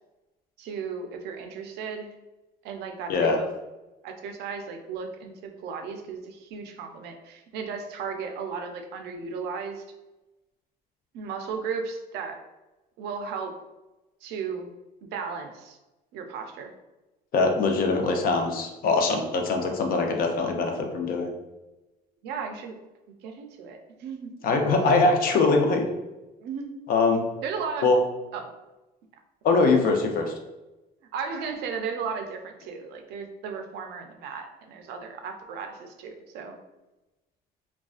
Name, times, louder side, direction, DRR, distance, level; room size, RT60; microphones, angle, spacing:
voice 1, 0.6-2.1 2.6-3.5 4.0-9.8 11.1-12.4 13.0-13.6 14.2-14.7 15.0-15.8 16.1-16.7 22.2-22.8 23.2-24.5 26.4-26.7 27.4-27.9 28.3-28.4 29.8-29.9 31.1-36.6, right 5 dB, 80° right, 5 dB, 0.4 m, -35 dB
voice 2, 17.3-21.3 24.4-25.9 26.9-27.2 27.8-28.0 29.4-30.3, left 3 dB, 60° left, 3 dB, 0.5 m, -22 dB
2.4 x 2.2 x 2.3 m, 1.0 s
cardioid pair, 110°, 17 cm